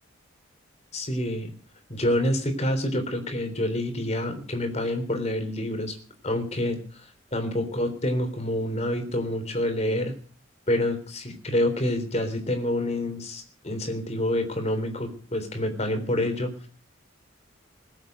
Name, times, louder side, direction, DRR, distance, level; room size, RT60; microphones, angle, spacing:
voice 1, 0.9-1.5 1.9-6.0 6.2-7.1 7.3-10.1 10.7-16.5, left 1 dB, 30° left, 6 dB, 3.4 m, -27 dB
20.5 x 8.2 x 7.7 m, 0.43 s
head